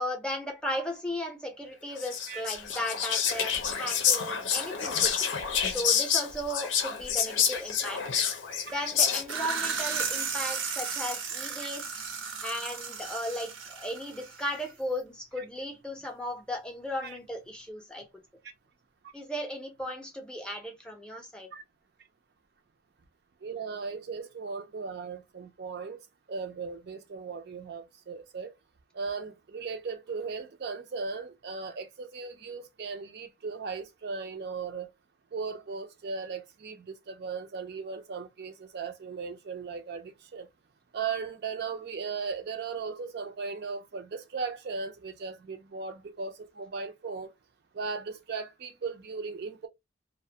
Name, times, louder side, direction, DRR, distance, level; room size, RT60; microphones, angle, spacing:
voice 1, 0.0-5.3 5.7-8.0 8.6-11.9 12.4-18.1 19.1-21.5, left 1 dB, 5° left, 0.5 m, -36 dB
Whispering, 2.0-9.5, left 7 dB, 80° left, 0.6 m, -28 dB
sound 1, 9.1-14.7, right 6 dB, 90° right, 0.7 m, -34 dB
voice 2, 23.4-26.0 26.3-28.5 28.9-34.9 35.3-40.5 40.9-47.3 47.7-49.7, right 5 dB, 55° right, 0.4 m, -37 dB
2.4 x 2.1 x 2.6 m
head